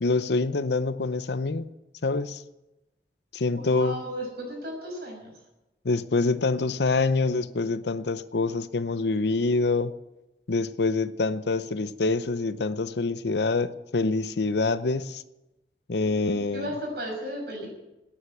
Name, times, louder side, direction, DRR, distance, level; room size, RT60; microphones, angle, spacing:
voice 1, 0.0-1.7 2.0-2.4 3.3-4.0 5.8-9.9 10.5-15.2 15.9-16.7, left 3 dB, 75° left, 14 dB, 0.7 m, -26 dB
voice 2, 3.5-5.3 16.3-17.7, equal, 60° right, 1 dB, 6.2 m, -35 dB
12.5 x 10.0 x 9.1 m, 0.98 s
head